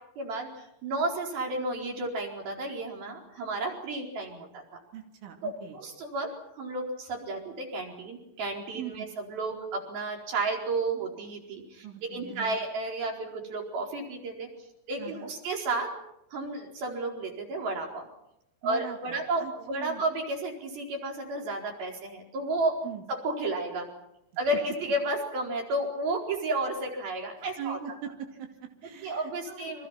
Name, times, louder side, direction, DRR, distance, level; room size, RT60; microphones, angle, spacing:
voice 1, 0.2-4.8 5.4-6.3 6.6-14.5 14.9-15.9 16.3-18.1 18.6-22.8 23.1-23.9 24.4-27.8 29.0-29.9, right 2 dB, 55° right, 1 dB, 6.1 m, -32 dB
voice 2, 4.9-5.8 8.8-9.1 11.8-12.6 15.0-15.3 18.6-20.0 22.8-23.0 27.4-29.9, right 9 dB, 90° right, 3 dB, 5.0 m, -41 dB
29.5 x 25.5 x 5.9 m, 0.81 s
omnidirectional pair, 5.3 m